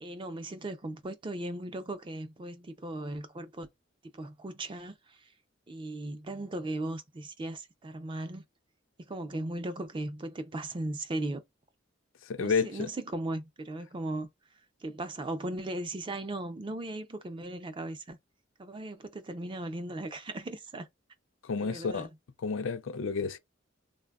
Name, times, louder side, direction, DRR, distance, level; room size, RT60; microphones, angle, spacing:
voice 1, 0.0-3.7 4.1-5.3 5.7-8.4 9.1-11.4 12.4-14.3 14.8-18.2 18.6-20.9 21.5-22.1, right 1 dB, 25° right, 0.4 m, -37 dB
voice 2, 12.3-12.9 21.4-22.1 22.4-23.4, left 5 dB, 85° left, 0.4 m, -30 dB
3.3 x 2.1 x 2.3 m
head